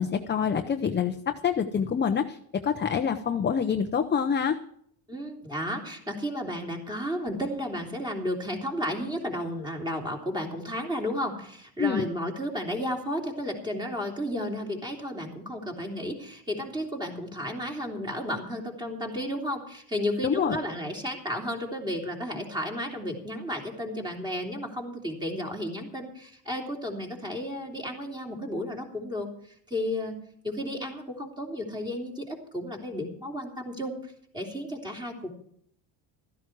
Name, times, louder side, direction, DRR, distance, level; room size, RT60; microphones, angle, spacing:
voice 1, 0.0-2.4 2.6-4.6 11.8-12.1 20.2-20.6, left 7 dB, 20° left, 6 dB, 0.8 m, -26 dB
voice 2, 5.1-29.3 29.7-30.2 30.4-35.3, equal, 10° right, 0 dB, 3.3 m, -33 dB
15.0 x 14.0 x 4.7 m, 0.67 s
cardioid pair, 145°, 49 cm